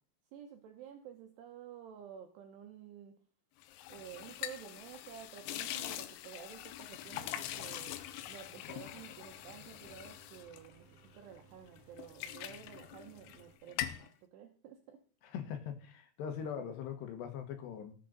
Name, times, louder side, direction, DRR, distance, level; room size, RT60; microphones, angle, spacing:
voice 1, 0.3-3.2 3.9-10.9 11.1-15.0, right 9 dB, 75° right, 5 dB, 2.7 m, -51 dB
sound 1, 3.6-11.4 11.8-13.4 13.7-14.1, left 13 dB, 90° left, 3.4 m, -43 dB
Mechanical fan, 7.0-13.6, right 5 dB, 50° right, 2.0 m, -63 dB
voice 2, 15.2-17.9, left 8 dB, 70° left, 7 dB, 3.1 m, -41 dB
18.5 x 7.8 x 4.0 m, 0.42 s
omnidirectional pair, 5.8 m